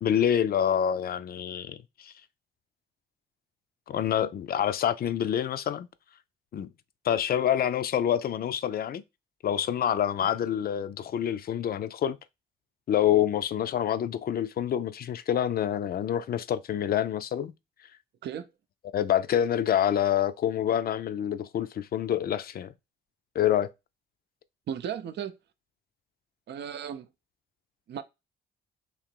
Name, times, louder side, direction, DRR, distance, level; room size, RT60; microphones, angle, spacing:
voice 1, 0.0-2.1 3.9-5.9 6.5-6.7 7.0-9.0 9.4-12.2 12.9-17.5 18.9-22.7 23.3-23.7, left 10 dB, 50° left, 0.5 m, -27 dB
voice 2, 24.7-25.3 26.5-27.1 27.9-28.0, right 9 dB, 60° right, 0.6 m, -35 dB
3.8 x 2.9 x 4.4 m
cardioid pair, 90°, 20 cm